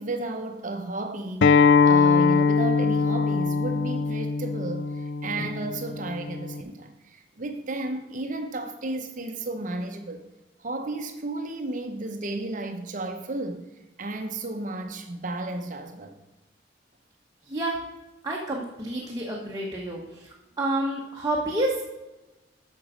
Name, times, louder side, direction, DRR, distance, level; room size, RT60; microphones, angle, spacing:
voice 1, 0.0-10.2 10.6-13.6 14.0-16.2 19.0-19.1, right 2 dB, 45° right, 0.7 m, -33 dB
Acoustic guitar, 1.4-6.6, left 5 dB, 75° left, 0.4 m, -22 dB
voice 2, 17.5-17.8 18.2-20.3 20.6-21.9, right 1 dB, 20° right, 1.1 m, -29 dB
9.2 x 6.2 x 5.0 m
head